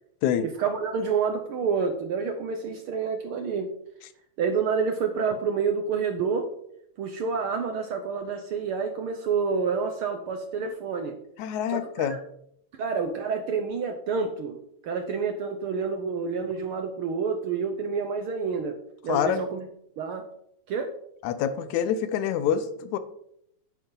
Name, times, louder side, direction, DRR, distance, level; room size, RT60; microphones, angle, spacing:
voice 1, 0.4-3.7 4.4-6.5 7.0-11.2 11.7-12.2 12.8-14.6 14.8-18.8 19.0-19.7 20.0-20.3 20.7-20.9, right 5 dB, 75° right, 6 dB, 1.3 m, -28 dB
voice 2, 11.4-12.2 19.1-19.4 21.2-23.0, left 9 dB, 80° left, 12 dB, 2.1 m, -26 dB
10.0 x 9.2 x 3.9 m, 0.75 s
omnidirectional pair, 3.4 m